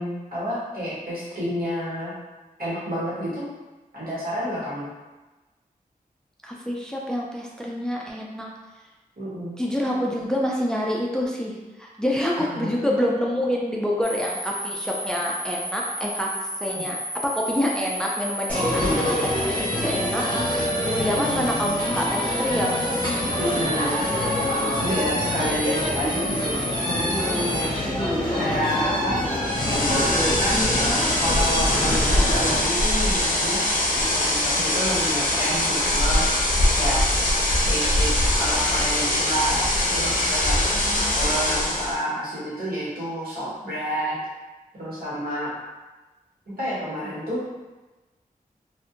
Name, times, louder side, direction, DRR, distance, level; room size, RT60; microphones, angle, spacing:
voice 1, 0.0-2.1 2.6-3.4 3.9-4.9 9.2-9.6 12.4-12.7 16.7-16.9 18.7-19.1 21.0-21.3 23.4-24.0 24.8-26.5 26.9-27.1 28.4-29.2 29.8-30.9 31.2-33.6 34.1-36.2 36.8-37.0 37.7-38.1 38.4-40.6 41.1-44.2 44.7-45.5 46.5-47.4, equal, 75° right, -9 dB, 1.2 m, -29 dB
voice 2, 6.4-8.5 9.6-16.3 16.6-17.0 17.2-18.8 19.2-22.8 28.2-28.5 40.7-41.2, equal, 5° left, -2 dB, 0.4 m, -27 dB
sound 1, 14.0-27.7, equal, 55° right, 1.1 m, -32 dB
sound 2, 18.5-32.6, left 1 dB, 35° left, 0.9 m, -26 dB
sound 3, 29.4-42.0, left 1 dB, 60° left, 0.6 m, -22 dB
2.6 x 2.4 x 2.5 m, 1.2 s
wide cardioid pair, 65°, 15 cm